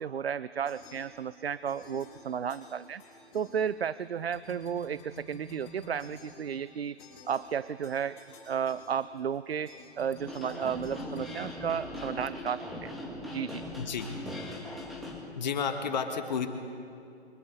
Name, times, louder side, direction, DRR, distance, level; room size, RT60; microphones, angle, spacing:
voice 1, 0.0-3.0 3.3-7.0 7.3-8.2 8.5-9.7 10.0-12.9 13.3-13.6, right 7 dB, 65° right, 17 dB, 0.5 m, -33 dB
sound 1, 0.6-1.4 1.6-4.0 4.3-12.2, left 2 dB, 20° left, 6.0 m, -52 dB
sound 2, 10.2-15.2, left 1 dB, ahead, 1.8 m, -40 dB
voice 2, 13.8-14.1 15.4-16.5, left 6 dB, 40° left, 7 dB, 1.7 m, -31 dB
28.5 x 24.5 x 4.0 m, 2.6 s
figure-of-eight pair, 135°, 33 cm